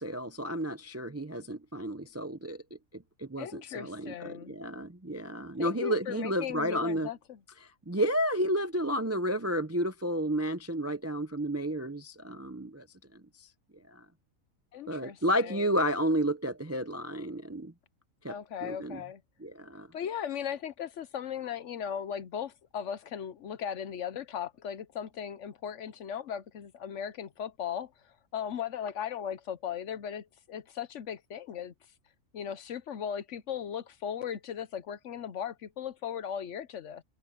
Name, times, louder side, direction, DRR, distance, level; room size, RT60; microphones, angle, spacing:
voice 1, 0.0-2.6 2.9-7.1 7.9-12.8 13.9-14.0 14.9-17.7 18.2-19.0 19.4-19.9, equal, 20° right, 0.4 m, -31 dB
voice 2, 3.4-4.6 5.6-7.4 14.7-15.7 18.3-19.2 19.9-31.7 32.3-37.0, left 8 dB, 65° left, 1.0 m, -37 dB
omnidirectional pair, 1.5 m